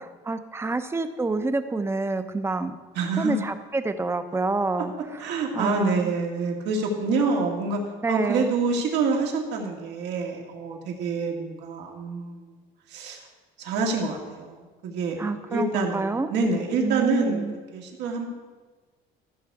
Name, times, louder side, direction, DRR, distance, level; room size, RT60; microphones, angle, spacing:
voice 1, 0.0-2.8 3.2-6.1 8.0-8.5 15.2-16.3 16.8-17.5, right 3 dB, 15° right, 10 dB, 0.6 m, -28 dB
voice 2, 3.0-3.4 5.2-7.8 8.1-12.5 12.9-13.2 13.6-14.6 14.8-15.2 15.5-17.4 17.7-18.3, right 4 dB, 85° right, 1 dB, 2.0 m, -26 dB
14.5 x 6.8 x 4.7 m, 1.3 s
cardioid pair, 135°, 17 cm